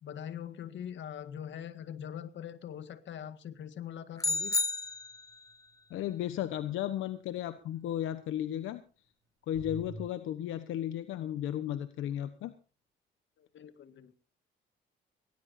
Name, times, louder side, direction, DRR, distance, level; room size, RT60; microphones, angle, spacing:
voice 1, 0.0-4.6 13.4-14.1, left 9 dB, 70° left, 10 dB, 1.9 m, -42 dB
sound 1, 4.2-5.5, left 3 dB, 15° left, 0.8 m, -32 dB
sound 2, 4.9-5.1 9.5-10.0, right 3 dB, 75° right, 4.5 m, -43 dB
voice 2, 5.9-8.8 9.5-12.5, left 11 dB, 85° left, 10 dB, 1.2 m, -34 dB
19.0 x 19.0 x 2.7 m, 0.35 s
cardioid pair, 90°, 20 cm